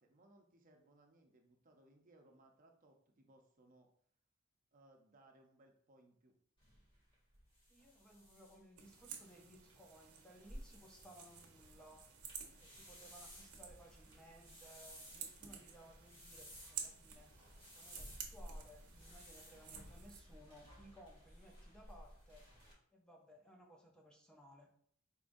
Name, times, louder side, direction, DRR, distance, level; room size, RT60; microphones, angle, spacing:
voice 1, 0.0-3.9 4.7-6.4, right 1 dB, 40° right, 3 dB, 0.6 m, -67 dB
sound 1, 6.6-22.7, equal, 25° left, 1.6 m, -57 dB
voice 2, 7.7-12.0 12.6-17.3 17.7-22.4 22.9-24.7, equal, 5° left, 0 dB, 0.5 m, -61 dB
sound 2, 8.8-20.2, right 7 dB, 85° right, 0.8 m, -53 dB
4.4 x 3.6 x 2.6 m, 0.63 s
head